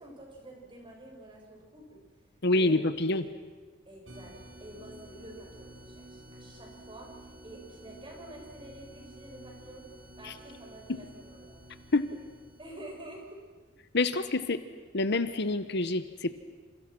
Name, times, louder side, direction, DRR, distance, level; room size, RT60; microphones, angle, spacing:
voice 1, 0.0-2.0 2.5-3.3 3.9-11.8 12.1-12.2 12.6-13.4, right 1 dB, 25° right, 0 dB, 7.2 m, -48 dB
voice 2, 2.4-3.2 10.2-10.3 10.9-11.0 11.9-12.1 13.9-14.6 14.9-16.4, left 2 dB, 60° left, 11 dB, 1.2 m, -27 dB
sound 1, 4.1-13.4, right 1 dB, 70° right, 4.9 m, -51 dB
28.5 x 28.5 x 6.2 m, 1.4 s
head